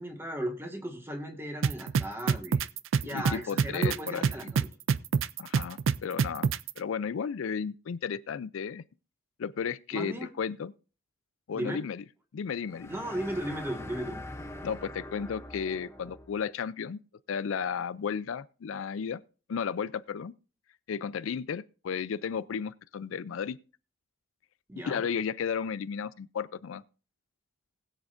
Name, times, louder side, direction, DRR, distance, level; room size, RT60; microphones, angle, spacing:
voice 1, 0.0-2.7 3.0-4.7 9.9-10.3 11.5-11.9 12.9-14.2 24.7-25.0, right 1 dB, 10° right, 1.6 m, -36 dB
sound 1, 1.6-6.7, right 6 dB, 65° right, 0.4 m, -25 dB
voice 2, 3.1-4.2 5.4-6.5 6.8-8.8 9.4-10.7 11.5-12.0 12.3-12.9 14.6-17.0 17.3-19.2 19.5-20.3 20.9-23.6 24.9-26.8, left 6 dB, 70° left, 0.4 m, -33 dB
sound 2, 12.7-16.4, left 1 dB, 10° left, 0.7 m, -43 dB
20.0 x 7.3 x 2.5 m
head